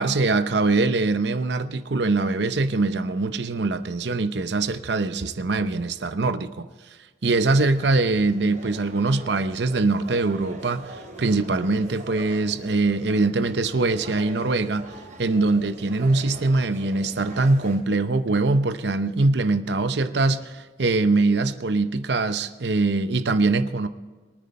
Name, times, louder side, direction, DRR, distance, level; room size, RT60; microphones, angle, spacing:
voice 1, 0.0-6.7 7.2-14.9 15.2-23.9, right 3 dB, 70° right, 0.7 m, -23 dB
sound 1, 7.2-17.8, right 1 dB, 40° right, 3.7 m, -42 dB
23.0 x 9.6 x 4.3 m
head